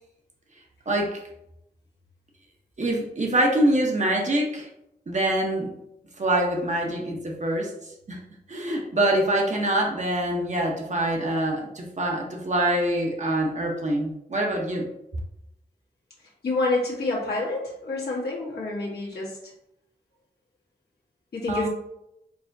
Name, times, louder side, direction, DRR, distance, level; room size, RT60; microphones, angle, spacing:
voice 1, 0.9-1.2 2.8-4.7 5.1-5.7 6.2-7.7 8.1-8.2 8.5-14.9 21.5-21.7, right 1 dB, 45° right, 0 dB, 0.8 m, -25 dB
voice 2, 16.4-19.3 21.3-21.7, left 2 dB, 70° left, -5 dB, 1.4 m, -27 dB
4.6 x 2.7 x 2.6 m, 0.83 s
wide cardioid pair, 100°, 17 cm